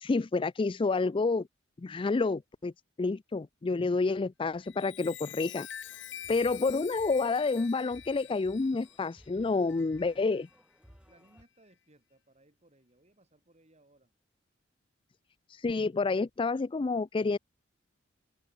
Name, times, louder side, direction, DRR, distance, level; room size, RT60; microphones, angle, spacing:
voice 1, 0.0-1.5 1.8-2.7 3.0-5.7 6.3-10.5 15.5-17.4, left 3 dB, 25° left, 0.4 m, -29 dB
Chime, 4.5-10.5 11.1-11.4, left 11 dB, 65° left, 4.2 m, -46 dB
sound 1, 5.8-11.4, equal, 5° right, 4.1 m, -60 dB
voice 2, 6.1-6.4 10.8-14.1, right 1 dB, 35° right, 7.9 m, -64 dB
head